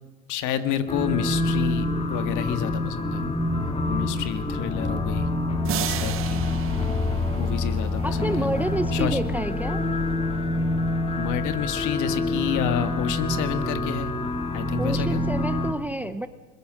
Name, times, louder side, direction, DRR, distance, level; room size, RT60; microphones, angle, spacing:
voice 1, 0.3-3.2 3.9-5.3 5.8-6.4 7.4-8.5 8.9-9.2 11.2-14.1 14.5-15.2, left 9 dB, 55° left, 10 dB, 1.9 m, -29 dB
sound 1, 0.9-15.7, left 2 dB, 15° left, 2.1 m, -26 dB
sound 2, 5.6-8.1, right 13 dB, 35° right, 0.8 m, -34 dB
voice 2, 8.0-9.8 14.8-16.3, right 1 dB, 5° right, 12 dB, 0.6 m, -28 dB
22.0 x 21.5 x 6.3 m, 1.4 s
supercardioid pair, 130°, 36 cm